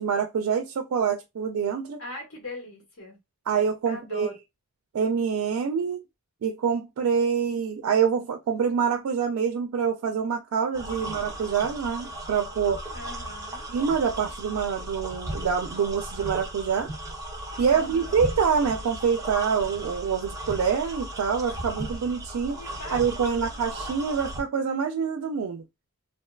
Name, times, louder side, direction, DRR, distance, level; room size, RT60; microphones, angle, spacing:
voice 1, 0.0-2.0 3.5-4.3 4.9-6.0 6.4-12.8 13.7-16.9 17.6-22.6 22.9-25.6, right 6 dB, 75° right, 0.3 m, -26 dB
voice 2, 2.0-3.2 3.9-4.3 10.9-11.3 12.9-13.6 17.7-18.2 22.5-23.6, left 2 dB, 65° left, 1.2 m, -41 dB
sound 1, 10.7-24.4, right 1 dB, 15° right, 0.5 m, -36 dB
2.6 x 2.2 x 2.3 m
head